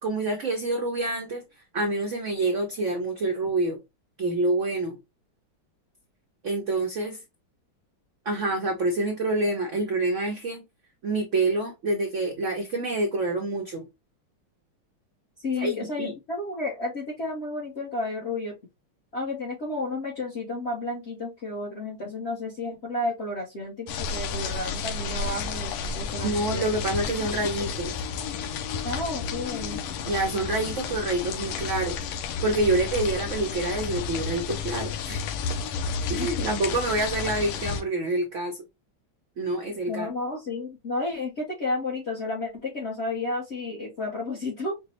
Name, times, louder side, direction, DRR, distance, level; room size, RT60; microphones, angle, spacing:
voice 1, 0.0-1.4 1.7-3.8 4.2-5.0 6.4-7.2 8.3-10.6 11.0-13.9 15.5-16.1 26.2-27.9 30.1-32.0 32.4-35.2 36.1-38.6 39.4-40.1, right 2 dB, 85° right, 0.6 m, -27 dB
voice 2, 15.4-18.5 19.1-26.7 28.8-29.8 36.2-36.5 39.9-44.7, left 2 dB, 55° left, 0.7 m, -32 dB
sound 1, 23.9-37.8, left 6 dB, 85° left, 1.4 m, -31 dB
5.0 x 2.0 x 2.8 m
omnidirectional pair, 2.2 m